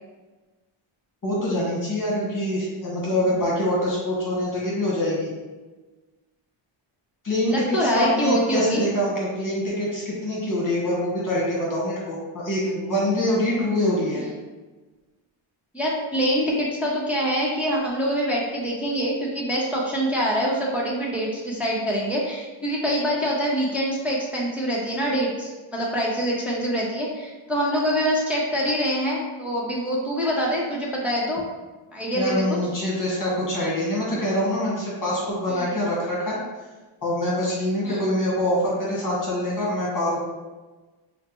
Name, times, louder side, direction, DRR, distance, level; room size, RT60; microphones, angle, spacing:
voice 1, 1.2-5.3 7.2-14.2 32.1-36.4 37.0-40.2, left 1 dB, 40° left, -5 dB, 1.3 m, -25 dB
voice 2, 7.5-8.8 14.1-14.2 15.7-31.4 31.9-32.4 35.5-35.8 37.8-38.1, equal, 5° right, -4 dB, 0.6 m, -25 dB
5.5 x 2.1 x 2.9 m, 1.2 s
cardioid pair, 115°, 50 cm